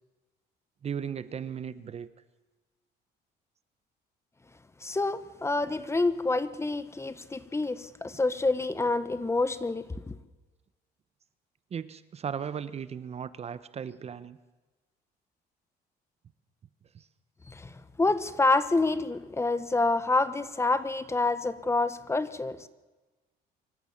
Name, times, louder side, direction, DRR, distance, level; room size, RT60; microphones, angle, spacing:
voice 1, 0.8-2.1 11.7-14.4 16.9-17.1, right 7 dB, 40° right, 15 dB, 0.9 m, -36 dB
voice 2, 4.8-10.1 17.5-22.7, left 3 dB, 15° left, 14 dB, 1.2 m, -28 dB
25.0 x 14.5 x 7.3 m, 1.2 s
cardioid pair, 110°, 17 cm